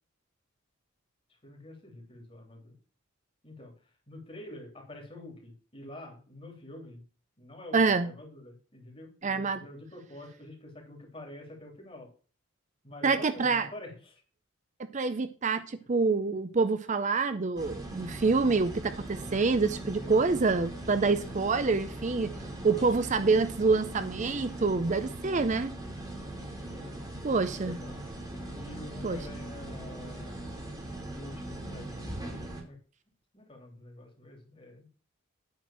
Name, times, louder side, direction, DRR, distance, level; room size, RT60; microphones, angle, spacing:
voice 1, 1.4-2.7 3.4-3.7 4.1-7.0 7.4-12.1 12.8-14.2 20.0-20.4 21.1-21.2 22.4-22.8 26.6-28.0 28.6-30.5 31.1-32.2 32.6-32.8 33.3-34.9, left 1 dB, 25° left, 3.2 m, -47 dB
voice 2, 7.7-8.1 9.2-9.6 13.0-13.7 14.9-22.3 22.6-25.7 27.2-27.8 29.0-29.2, right 4 dB, 35° right, 0.5 m, -26 dB
sound 1, 17.6-32.6, right 1 dB, 20° right, 2.6 m, -40 dB
9.4 x 4.5 x 7.4 m
head